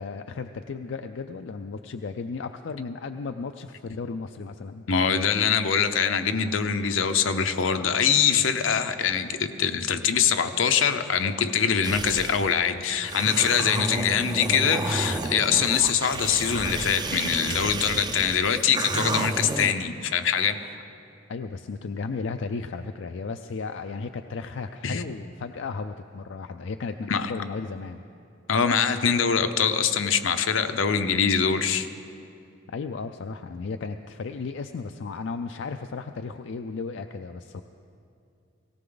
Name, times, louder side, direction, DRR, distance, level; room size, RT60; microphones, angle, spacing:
voice 1, 0.0-4.8 21.3-28.0 32.7-37.6, left 4 dB, 65° left, 7 dB, 0.4 m, -34 dB
voice 2, 4.9-20.8 24.8-25.0 27.1-27.3 28.5-31.9, left 7 dB, 85° left, 8 dB, 0.8 m, -23 dB
sound 1, 11.8-12.4 13.0-19.7, right 2 dB, 20° right, 0.5 m, -31 dB
18.0 x 17.5 x 3.9 m, 2.5 s
head